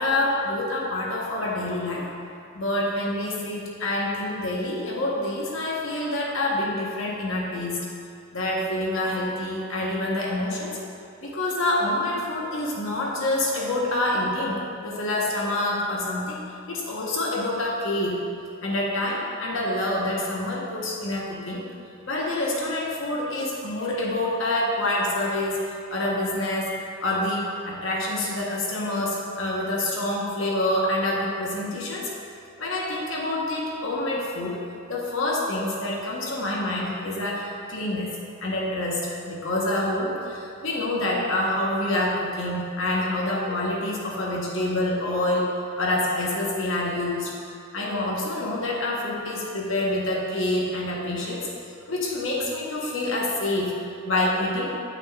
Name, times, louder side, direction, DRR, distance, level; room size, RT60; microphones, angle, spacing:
voice 1, 0.0-2.1 2.5-7.8 8.3-10.8 11.2-16.4 16.7-18.2 18.6-21.6 22.0-25.6 25.9-26.7 27.0-32.1 32.6-34.6 34.9-38.1 38.4-47.3 47.7-51.5 51.9-54.7, left 1 dB, 70° left, -3 dB, 1.0 m, -27 dB
7.5 x 5.9 x 2.4 m, 2.4 s
head